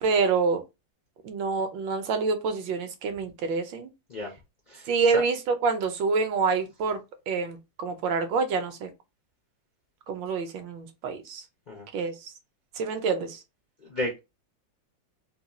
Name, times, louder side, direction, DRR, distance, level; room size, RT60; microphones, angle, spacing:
voice 1, 0.0-0.6 1.2-3.9 4.9-5.4 5.6-7.0 7.3-8.9 10.1-11.4 11.9-12.1 12.8-13.4, right 4 dB, 75° right, 1.3 m, -27 dB
voice 2, 4.7-5.2 11.7-11.9 13.8-14.2, left 1 dB, 85° left, 0.4 m, -33 dB
4.0 x 2.3 x 2.8 m
omnidirectional pair, 2.1 m